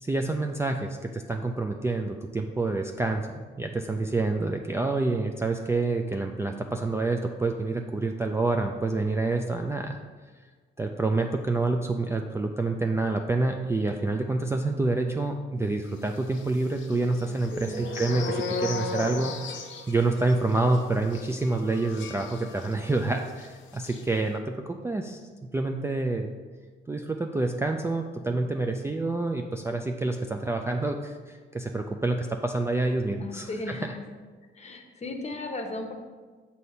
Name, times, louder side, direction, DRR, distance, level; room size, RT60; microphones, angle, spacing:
voice 1, 0.0-10.0 10.8-19.4 19.9-24.6 24.8-25.2 25.5-26.3 26.9-33.9, right 2 dB, 15° right, 3 dB, 0.3 m, -27 dB
sound 1, 16.3-23.0 23.3-23.5 23.7-24.0, left 5 dB, 75° left, 0.6 m, -36 dB
voice 2, 17.3-17.8 33.2-34.0 34.5-35.9, left 2 dB, 35° left, 4 dB, 0.8 m, -36 dB
sound 2, 17.6-22.4, right 4 dB, 70° right, 1.1 m, -43 dB
6.2 x 2.8 x 5.4 m, 1.4 s
cardioid pair, 90°, 20 cm